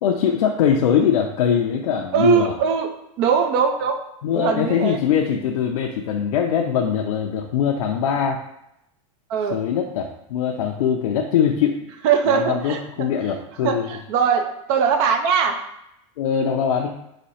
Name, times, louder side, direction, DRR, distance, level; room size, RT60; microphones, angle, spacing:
voice 1, 0.0-2.6 4.2-8.4 9.5-11.8 12.3-13.9 16.2-16.9, left 8 dB, 90° left, 2 dB, 0.5 m, -22 dB
voice 2, 2.1-2.9 3.2-4.0 4.3-5.0 9.3-9.6 12.0-12.8 13.3-15.6, right 7 dB, 50° right, 5 dB, 0.5 m, -21 dB
4.2 x 2.8 x 4.1 m, 0.80 s
supercardioid pair, 140°, 18 cm